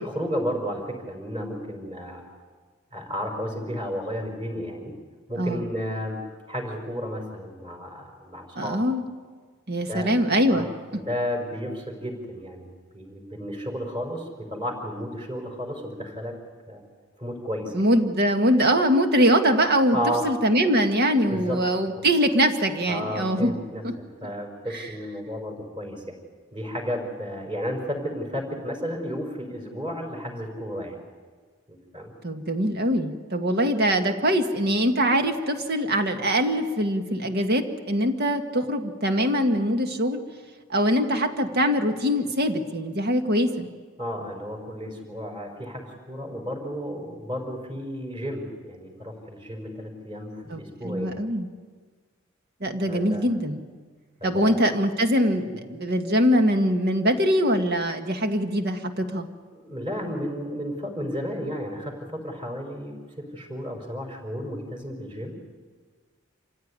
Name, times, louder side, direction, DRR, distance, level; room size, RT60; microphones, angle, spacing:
voice 1, 0.0-2.2 2.9-4.9 5.3-6.2 6.5-8.8 9.9-10.1 10.5-10.6 10.9-16.3 16.7-16.8 17.2-17.7 19.9-20.3 21.3-21.6 22.9-23.8 24.2-26.2 26.5-31.0 31.7-32.1 44.0-51.2 52.9-53.3 54.2-54.7 59.5-65.4, equal, 25° right, 2 dB, 5.0 m, -32 dB
voice 2, 8.6-9.0 9.7-10.7 17.7-20.0 20.2-23.6 23.8-23.9 24.7-24.9 32.2-40.2 40.7-43.7 50.5-51.5 52.6-53.6 54.2-59.3, equal, 50° right, 6 dB, 1.8 m, -23 dB
27.0 x 15.5 x 9.7 m, 1.5 s
head